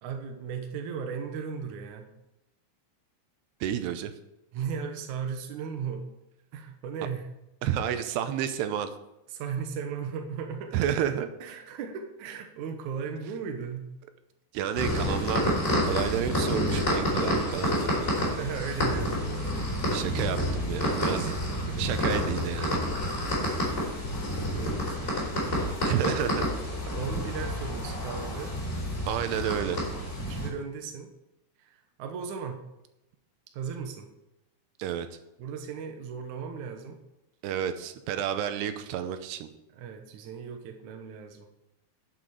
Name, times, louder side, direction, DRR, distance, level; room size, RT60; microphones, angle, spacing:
voice 1, 0.0-2.1 4.5-6.1 6.5-7.4 9.3-10.8 11.4-13.9 18.4-19.7 21.1-21.9 23.4-23.6 23.9-24.3 24.5-25.8 27.0-28.6 30.2-31.1 31.6-32.6 33.5-34.1 35.4-37.0 39.7-41.5, right 6 dB, 70° right, 4 dB, 1.9 m, -37 dB
voice 2, 3.6-4.1 7.6-8.9 10.7-11.3 14.5-15.5 15.8-18.1 19.9-21.2 21.8-22.9 25.8-26.5 29.1-29.9 34.8-35.1 37.4-39.5, right 9 dB, 90° right, 10 dB, 2.8 m, -30 dB
sound 1, 14.8-30.5, left 1 dB, 20° left, 4.7 m, -29 dB
11.5 x 7.9 x 4.8 m, 0.90 s
omnidirectional pair, 4.8 m